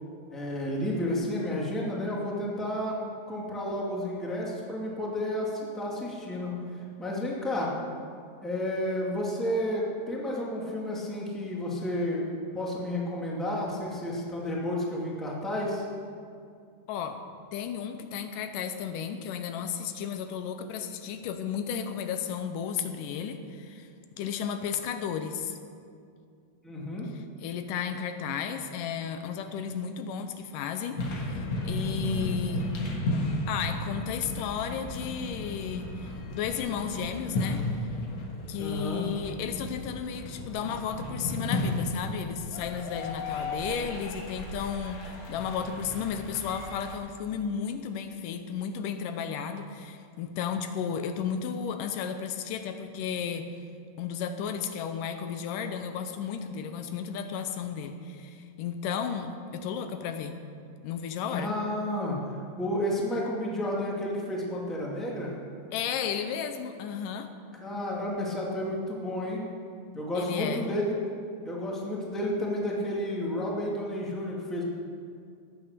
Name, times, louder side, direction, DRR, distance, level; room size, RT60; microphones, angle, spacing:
voice 1, 0.3-3.0 3.3-6.6 7.0-7.7 8.4-12.3 12.5-15.8 26.6-27.1 38.6-39.0 61.3-65.3 67.6-69.4 69.9-70.9 71.4-74.6, left 1 dB, ahead, -4 dB, 1.5 m, -31 dB
voice 2, 16.9-17.2 17.5-23.9 24.2-25.6 27.1-32.7 33.5-37.7 38.5-53.5 54.0-60.4 60.8-61.5 65.7-67.3 70.2-70.7, left 7 dB, 80° left, 8 dB, 2.3 m, -33 dB
sound 1, 31.0-47.0, left 2 dB, 60° left, 2.6 m, -34 dB
14.5 x 9.4 x 6.8 m, 2.4 s
omnidirectional pair, 3.8 m